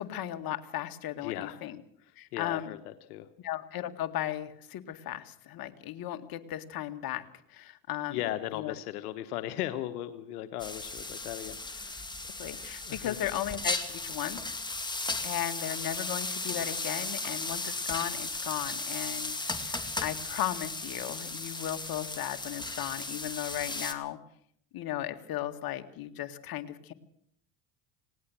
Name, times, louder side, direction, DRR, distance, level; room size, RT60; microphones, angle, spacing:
voice 1, 0.0-1.8 2.2-2.8 3.4-7.2 7.5-8.2 8.5-8.7 12.4-14.4 15.2-24.2 24.7-26.9, left 12 dB, 50° left, 7 dB, 2.1 m, -36 dB
voice 2, 1.2-1.6 2.0-3.3 8.1-12.1 12.8-13.2, left 13 dB, 85° left, 10 dB, 1.3 m, -37 dB
sound 1, 10.6-23.9, left 2 dB, 10° left, 2.3 m, -36 dB
19.0 x 18.5 x 7.5 m, 0.66 s
supercardioid pair, 90°, 44 cm